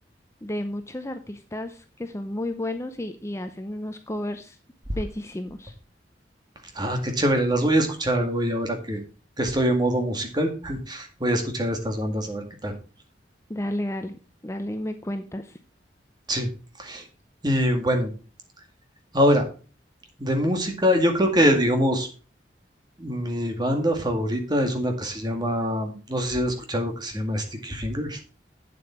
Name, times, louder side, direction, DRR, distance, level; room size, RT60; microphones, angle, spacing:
voice 1, 0.4-4.6 5.0-5.7 13.5-15.6, left 1 dB, 15° left, 7 dB, 0.6 m, -32 dB
voice 2, 6.8-9.0 9.4-12.7 16.3-16.5 16.8-17.0 17.4-18.1 19.1-19.4 20.2-22.1 23.0-28.2, equal, 25° right, 4 dB, 2.0 m, -24 dB
8.8 x 7.7 x 4.4 m, 0.36 s
head